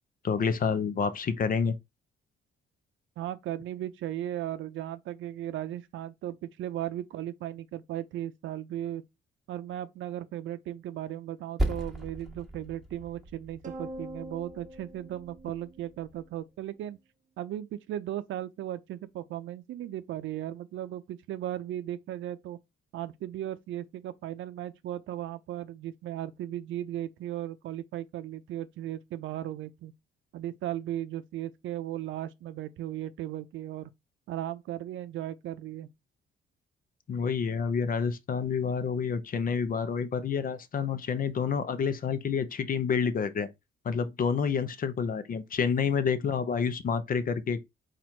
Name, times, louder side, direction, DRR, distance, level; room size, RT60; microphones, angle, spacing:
voice 1, 0.2-1.7 37.1-43.5 43.8-47.6, left 6 dB, 45° left, 0.7 m, -28 dB
voice 2, 3.2-9.0 9.5-17.0 17.4-22.6 22.9-29.9 30.3-33.9 34.3-35.9, right 12 dB, 75° right, 0.5 m, -36 dB
Percussion, 11.6-16.4, right 1 dB, ahead, 1.4 m, -37 dB
sound 1, 13.6-16.2, right 1 dB, 40° right, 0.7 m, -44 dB
4.2 x 2.5 x 4.3 m
cardioid pair, 90°, 20 cm